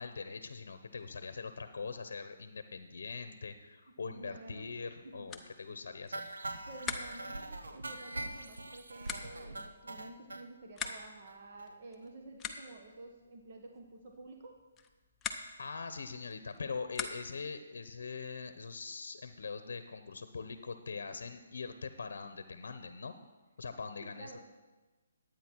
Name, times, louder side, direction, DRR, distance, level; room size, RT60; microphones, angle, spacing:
voice 1, 0.0-6.2 15.6-23.2 23.6-24.4, left 4 dB, 70° left, 9 dB, 0.8 m, -42 dB
voice 2, 4.1-4.8 5.0-5.3 5.7-5.8 6.6-14.6 24.0-24.4, right 2 dB, 45° right, 2 dB, 1.3 m, -51 dB
sound 1, 5.2-17.6, left 6 dB, 10° left, 0.7 m, -46 dB
sound 2, 6.1-10.4 10.8-11.0 11.3-11.4 11.6-11.7 12.0-12.1, right 2 dB, 90° right, 1.1 m, -42 dB
11.5 x 9.1 x 4.6 m, 1.2 s
hypercardioid pair, 155°, 0 cm